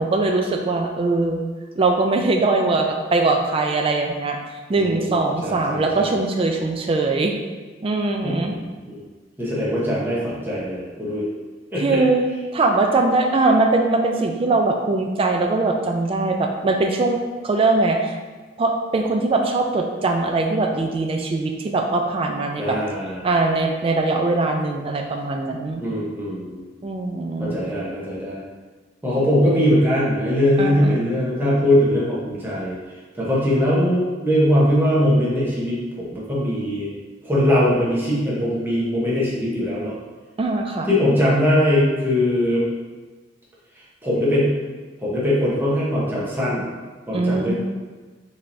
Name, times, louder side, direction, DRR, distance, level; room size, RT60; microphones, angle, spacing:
voice 1, 0.0-1.4 1.8-4.4 4.7-7.3 7.8-8.5 11.8-18.1 18.6-22.8 23.2-25.8 26.8-27.6 30.6-30.9 40.4-40.9 47.1-47.5, right 3 dB, 30° right, 3 dB, 0.3 m, -21 dB
voice 2, 4.7-6.1 8.2-9.0 9.4-11.3 11.7-12.0 22.6-23.2 25.8-26.7 27.4-28.4 29.0-32.8 33.1-36.9 37.2-39.9 40.9-42.6 44.0-44.5 45.0-46.7 47.1-47.5, equal, 10° right, -8 dB, 0.9 m, -21 dB
5.4 x 3.3 x 2.6 m, 1.4 s
head